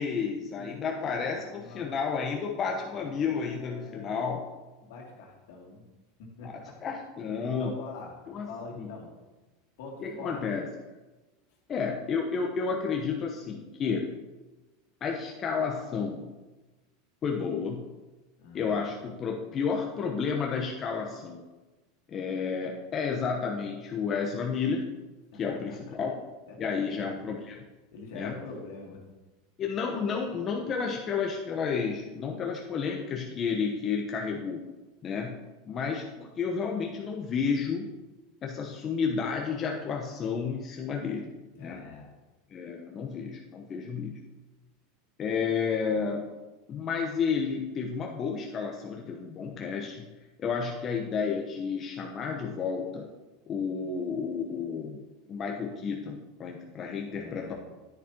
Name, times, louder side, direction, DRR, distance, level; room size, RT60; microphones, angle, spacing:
voice 1, 0.0-4.5 6.4-6.5 6.8-7.7 8.3-8.5 8.7-8.9 10.0-10.7 11.7-14.1 15.0-16.3 17.2-17.9 18.5-21.4 22.1-24.9 25.4-26.2 26.6-27.6 28.1-28.3 29.6-34.6 35.0-35.4 35.6-37.9 38.4-41.3 41.6-41.8 42.5-44.2 45.2-46.3 46.7-50.0 50.4-53.1 53.5-55.0 55.3-57.5, left 5 dB, 35° left, 0 dB, 1.0 m, -31 dB
voice 2, 0.6-2.0 2.9-4.1 4.8-5.8 6.2-6.9 7.6-8.2 8.5-9.1 9.8-10.4 18.4-18.9 25.3-26.0 26.5-27.1 27.9-29.0 41.6-42.1 57.1-57.5, left 3 dB, 70° left, -1 dB, 2.5 m, -45 dB
10.0 x 9.3 x 2.9 m, 1.2 s
hypercardioid pair, 100°, 0 cm